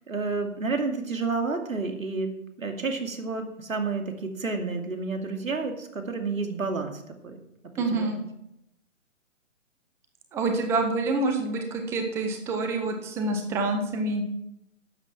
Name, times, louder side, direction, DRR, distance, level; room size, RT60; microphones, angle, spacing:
voice 1, 0.1-7.4 7.7-8.2, right 4 dB, 90° right, 4 dB, 2.6 m, -30 dB
voice 2, 7.8-8.2 10.3-14.2, right 3 dB, 5° right, 5 dB, 0.7 m, -27 dB
12.0 x 8.0 x 5.9 m, 0.82 s
hypercardioid pair, 145°, 40 cm